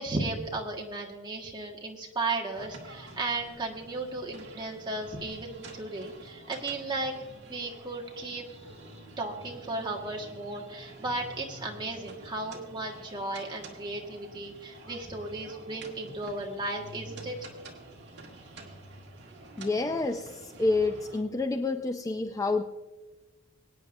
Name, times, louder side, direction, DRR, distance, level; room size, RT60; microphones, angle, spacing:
voice 1, 0.0-7.1 7.5-8.4 9.2-17.4, right 2 dB, 20° right, 0 dB, 1.6 m, -35 dB
sound 1, 2.5-21.2, right 2 dB, 50° right, 1.9 m, -48 dB
voice 2, 19.6-22.6, left 3 dB, 15° left, 6 dB, 0.4 m, -28 dB
23.5 x 9.3 x 2.6 m, 1.2 s
head